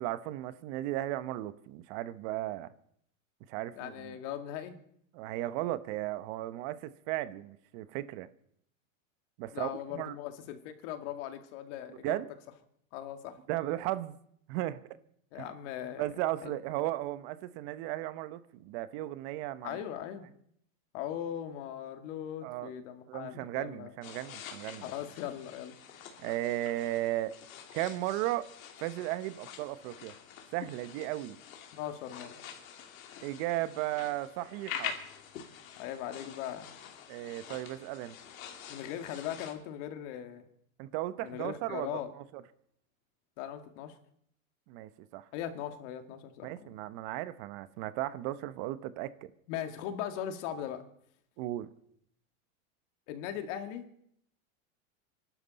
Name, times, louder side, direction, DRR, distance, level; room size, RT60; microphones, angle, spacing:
voice 1, 0.0-2.7 3.5-4.2 5.1-8.3 9.4-10.2 11.9-12.3 13.5-14.2 14.5-14.8 15.3-15.5 16.0-19.8 22.4-22.7 23.1-24.8 26.2-27.3 27.7-28.5 28.8-30.1 30.5-31.4 33.2-34.9 37.1-38.1 40.8-41.9 42.2-42.3 44.7-45.3 46.4-49.1 51.4-51.7, right 15 dB, 55° right, 1.0 m, -35 dB
voice 2, 3.7-4.8 9.5-12.2 12.9-13.4 15.3-16.1 16.4-16.6 19.6-20.3 20.9-23.9 24.8-25.8 31.7-32.4 35.8-36.7 38.7-40.4 41.2-42.1 43.4-44.0 45.3-46.9 49.5-50.8 53.1-53.8, left 10 dB, 60° left, 2.2 m, -39 dB
sound 1, 24.0-39.5, left 8 dB, 80° left, 2.9 m, -46 dB
26.0 x 12.0 x 4.1 m
supercardioid pair, 125°, 40 cm